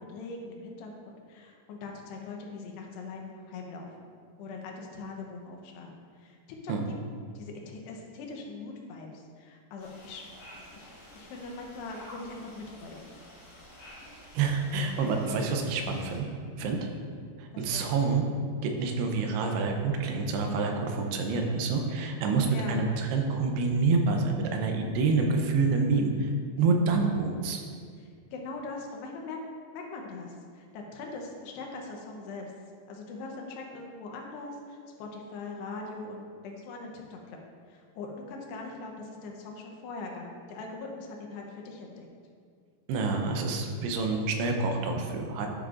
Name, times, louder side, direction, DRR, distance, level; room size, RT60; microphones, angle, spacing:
voice 1, 0.0-4.1 4.4-6.4 6.6-7.0 7.3-10.2 10.7-13.1 17.1-17.3 17.5-17.9 22.5-22.8 25.7-26.1 28.0-29.4 29.7-32.5 32.9-37.4 37.7-42.1, left 3 dB, 90° left, 1 dB, 3.1 m, -41 dB
sound 1, 9.8-16.2, left 1 dB, 45° left, 2.3 m, -50 dB
voice 2, 14.0-16.3 16.6-16.8 17.4-18.2 18.6-26.1 26.6-27.6 42.9-45.5, right 4 dB, 85° right, 3 dB, 2.8 m, -27 dB
12.0 x 6.8 x 2.5 m, 2.1 s
omnidirectional pair, 4.6 m